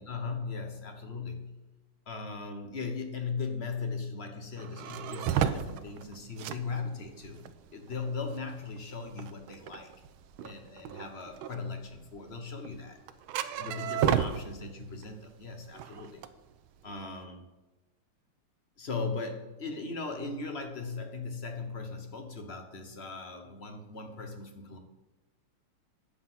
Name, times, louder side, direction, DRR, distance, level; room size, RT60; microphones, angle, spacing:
voice 1, 0.0-1.6 2.1-9.9 10.4-13.0 13.6-16.2 16.8-17.4 18.8-24.8, left 4 dB, 40° left, 5 dB, 1.1 m, -38 dB
sound 1, 4.6-15.1 15.4-17.1, right 10 dB, 80° right, 1.4 m, -33 dB
10.0 x 7.8 x 5.6 m, 1.1 s
omnidirectional pair, 2.3 m